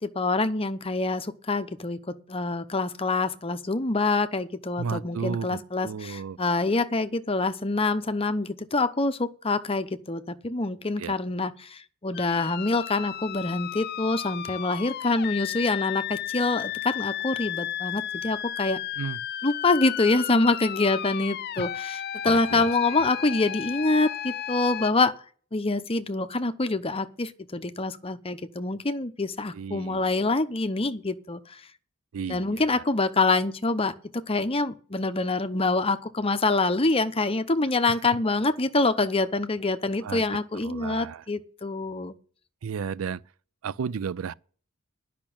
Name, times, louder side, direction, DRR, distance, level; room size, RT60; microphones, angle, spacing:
voice 1, 0.0-18.8 19.4-25.1 25.5-31.6 32.3-42.1, left 3 dB, 30° left, 0.8 m, -26 dB
voice 2, 4.8-6.4 11.0-11.2 19.0-19.2 21.6-21.7 22.2-22.6 22.9-23.1 29.5-30.1 32.1-32.8 37.8-38.0 40.0-40.3 40.5-41.2 42.6-43.2 43.6-44.3, right 6 dB, 85° right, 0.4 m, -33 dB
sound 1, 12.1-24.9, left 11 dB, 50° left, 0.4 m, -34 dB
10.5 x 5.9 x 8.7 m
head